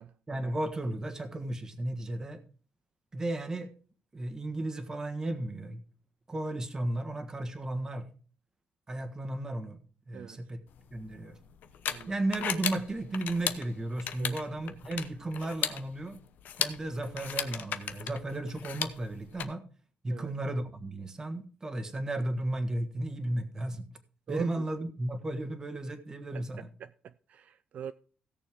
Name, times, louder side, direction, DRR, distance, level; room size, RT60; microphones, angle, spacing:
voice 1, 0.3-2.4 3.1-3.7 4.1-5.8 6.3-8.1 8.9-9.8 10.1-10.6 10.9-11.4 12.1-16.2 16.6-19.6 20.0-23.8 24.3-26.7, right 1 dB, 20° right, 1.5 m, -34 dB
sound 1, 10.7-19.4, left 9 dB, 75° left, 0.9 m, -36 dB
voice 2, 24.3-24.6 26.3-26.4 26.8-27.9, right 9 dB, 60° right, 0.4 m, -43 dB
17.0 x 6.9 x 3.6 m
cardioid pair, 140°, 3 cm